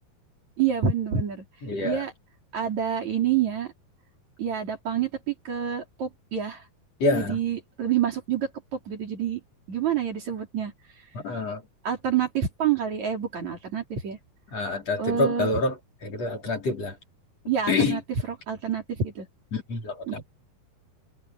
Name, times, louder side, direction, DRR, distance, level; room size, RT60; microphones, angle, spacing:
voice 1, 0.6-1.4 1.8-2.1 2.5-3.7 4.4-6.6 7.1-9.4 9.7-10.7 11.8-14.2 15.0-15.5 17.5-18.0 18.5-19.3 20.1-20.2, right 8 dB, 50° right, 4.7 m, -27 dB
voice 2, 1.6-2.0 7.0-7.4 11.1-11.6 14.5-17.0 17.7-18.0 19.5-20.2, left 3 dB, 45° left, 5.2 m, -27 dB
omnidirectional pair, 4.3 m